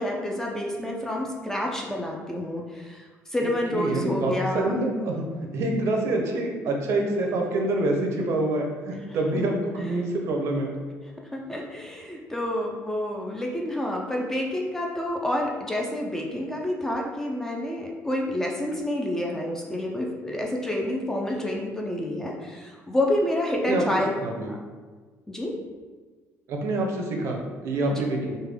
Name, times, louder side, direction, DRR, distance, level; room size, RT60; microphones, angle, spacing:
voice 1, 0.0-4.8 9.3-9.5 9.8-10.0 11.3-24.1 24.5-24.6 25.3-25.6 27.9-28.0, left 1 dB, 10° left, -1 dB, 0.3 m, -29 dB
voice 2, 3.7-5.3 5.5-10.7 23.6-23.8 24.2-24.5 26.5-28.4, right 2 dB, 60° right, 1 dB, 0.5 m, -26 dB
3.2 x 2.2 x 3.3 m, 1.4 s
cardioid pair, 150°, 5 cm